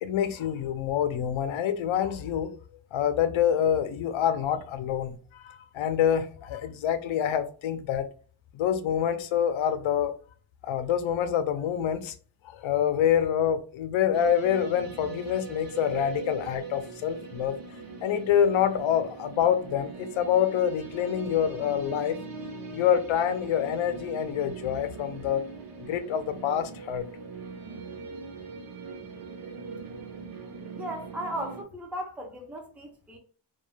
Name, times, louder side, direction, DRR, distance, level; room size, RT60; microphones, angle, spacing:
voice 1, 0.0-2.6 2.9-8.1 8.5-10.1 10.6-12.1 12.4-17.6 18.0-22.2 22.7-25.4 25.8-27.1, left 9 dB, 85° left, 0.6 m, -26 dB
sound 1, 14.1-31.6, right 5 dB, 50° right, 0.7 m, -41 dB
voice 2, 30.7-33.2, equal, 5° right, 0.4 m, -36 dB
2.3 x 2.2 x 3.0 m
wide cardioid pair, 150°, 46 cm